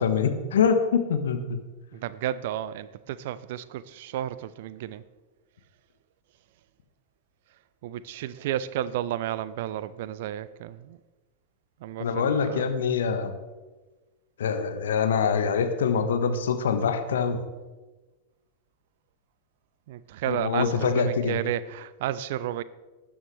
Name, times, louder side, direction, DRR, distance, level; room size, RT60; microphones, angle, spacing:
voice 1, 0.0-1.6 12.0-13.3 14.4-17.4 20.3-21.4, left 6 dB, 65° left, 1.4 m, -24 dB
voice 2, 1.9-5.0 7.8-11.0 11.8-12.7 19.9-22.6, right 12 dB, 55° right, 0.5 m, -32 dB
19.5 x 9.5 x 3.3 m
figure-of-eight pair, 90°, 0 cm